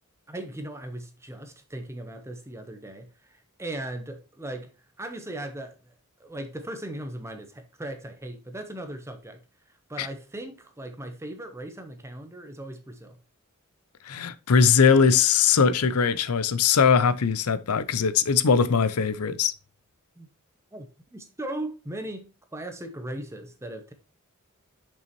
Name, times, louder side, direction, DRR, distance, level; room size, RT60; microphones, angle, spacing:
voice 1, 0.3-4.7 5.0-5.9 6.2-9.4 9.9-13.2 17.7-17.9 20.2-20.3 20.7-23.9, right 1 dB, 10° right, 0.8 m, -38 dB
voice 2, 14.0-19.5, left 6 dB, 85° left, 0.6 m, -21 dB
7.0 x 5.4 x 3.1 m
head